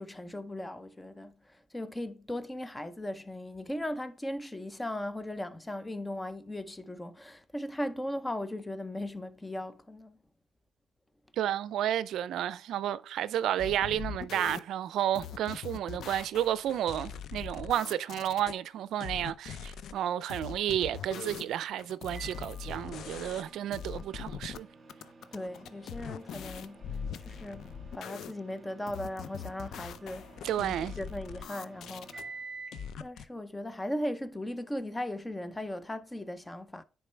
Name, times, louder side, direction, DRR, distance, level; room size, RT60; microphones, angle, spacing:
voice 1, 0.0-10.2 25.3-26.9 27.2-30.3 30.6-32.1 33.0-36.8, left 1 dB, 15° left, 0.6 m, -38 dB
voice 2, 11.3-24.7 30.4-30.9, right 11 dB, 80° right, 0.4 m, -31 dB
sound 1, 13.6-14.6 15.1-18.5 19.0-19.9 20.3-23.5 23.7-24.6 24.9-28.3 28.9-32.2 32.7-33.2, left 7 dB, 70° left, 0.5 m, -42 dB
Microwave oven, 22.1-32.9, right 3 dB, 35° right, 1.4 m, -51 dB
9.9 x 4.4 x 3.3 m
cardioid pair, 90°, 0 cm